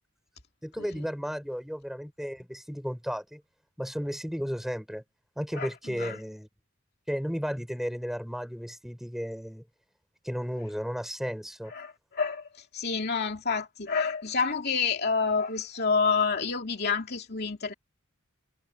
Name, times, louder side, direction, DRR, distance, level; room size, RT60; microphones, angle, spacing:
voice 1, 0.6-3.4 3.8-5.0 5.4-6.5 7.1-9.6 10.2-11.7, equal, ahead, 6.0 m, -34 dB
voice 2, 5.5-6.2 11.7-17.7, left 5 dB, 45° left, 2.9 m, -29 dB
head